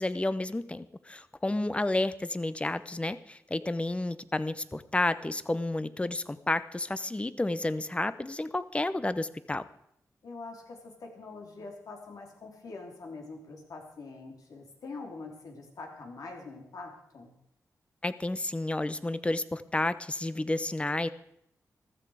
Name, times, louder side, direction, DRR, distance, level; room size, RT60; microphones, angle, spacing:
voice 1, 0.0-9.7 18.0-21.1, left 2 dB, 20° left, 14 dB, 0.8 m, -31 dB
voice 2, 10.2-17.3, left 3 dB, 75° left, 2 dB, 3.3 m, -44 dB
14.5 x 13.5 x 4.9 m, 0.75 s
cardioid pair, 75°, 6 cm